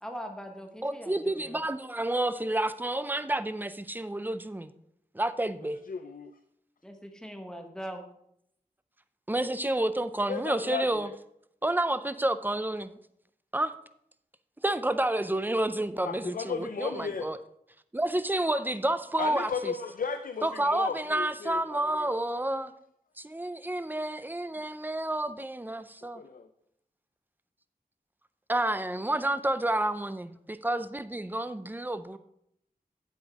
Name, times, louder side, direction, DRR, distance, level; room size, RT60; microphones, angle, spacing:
voice 1, 0.0-1.6 6.8-8.0, equal, 5° left, 4 dB, 1.2 m, -41 dB
voice 2, 0.8-4.7 5.1-5.8 9.3-11.1 11.6-12.9 13.5-13.7 14.6-17.4 17.9-19.7 20.4-22.7 23.2-26.2 28.5-32.2, right 1 dB, 10° right, 12 dB, 0.4 m, -30 dB
voice 3, 5.9-6.3 10.3-11.2 16.0-17.3 19.2-22.2 26.1-26.5, left 5 dB, 60° left, 8 dB, 0.5 m, -35 dB
8.1 x 8.1 x 3.6 m, 0.74 s
wide cardioid pair, 75°, 16 cm